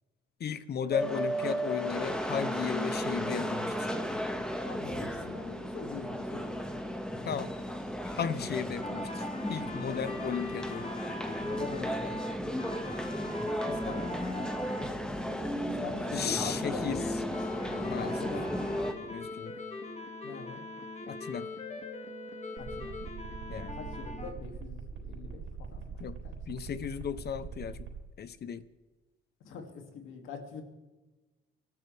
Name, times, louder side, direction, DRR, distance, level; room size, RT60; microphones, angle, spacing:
voice 1, 0.4-3.9 7.2-7.6 8.0-11.0 16.1-17.2 17.7-18.2 19.1-19.6 21.1-21.5 23.0-23.1 23.5-23.8 26.0-26.2 26.5-27.9 28.2-28.7, left 7 dB, 55° left, 14 dB, 0.9 m, -35 dB
sound 1, 0.9-18.9, equal, 5° left, 1.8 m, -34 dB
voice 2, 4.6-6.6 11.3-12.2 13.7-14.2 15.7-17.0 17.9-18.6 20.2-20.6 22.6-23.0 23.7-26.3 29.4-30.6, left 5 dB, 90° left, 4 dB, 2.7 m, -43 dB
sound 2, 8.8-14.9 15.3-24.3, left 2 dB, 35° left, 2.2 m, -42 dB
sound 3, 22.6-28.0, right 6 dB, 70° right, 3.9 m, -42 dB
25.5 x 13.5 x 3.5 m, 1.2 s
cardioid pair, 90°, 20 cm